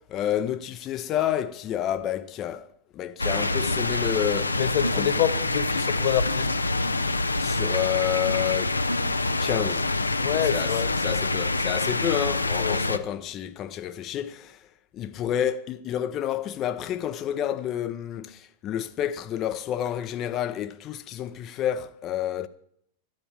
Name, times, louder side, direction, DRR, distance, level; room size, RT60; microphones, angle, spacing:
voice 1, 0.0-2.7 2.9-4.6 4.9-5.2 7.4-8.8 9.4-9.9 10.3-14.6 14.9-22.5, left 10 dB, 35° left, 0.6 m, -29 dB
sound 1, 3.2-13.0, left 2 dB, 80° left, 0.6 m, -26 dB
voice 2, 4.6-6.6 10.2-10.9 12.2-12.3 12.6-12.8, left 10 dB, 50° left, 1.4 m, -27 dB
13.0 x 9.7 x 8.8 m
figure-of-eight pair, 90°, 0 cm